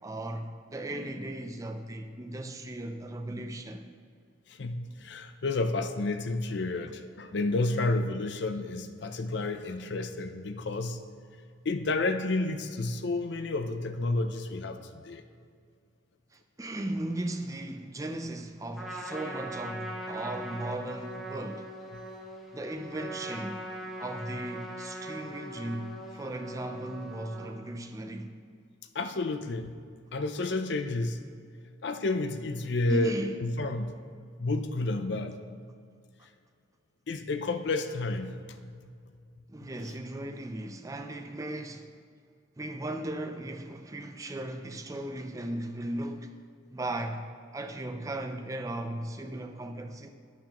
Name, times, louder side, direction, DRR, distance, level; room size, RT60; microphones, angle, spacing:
voice 1, 0.0-3.9 16.3-21.7 22.5-23.6 24.0-28.3 32.9-33.4 39.5-41.9 42.6-46.3 46.7-50.1, right 1 dB, 15° right, 0.4 m, -37 dB
voice 2, 4.6-11.0 11.7-15.2 28.9-29.8 30.1-31.2 31.8-33.1 33.4-34.0 34.4-35.4 37.1-38.6, left 2 dB, 60° left, 0.5 m, -30 dB
Trumpet, 18.7-27.5, right 1 dB, ahead, 0.9 m, -41 dB
11.5 x 8.9 x 3.0 m
head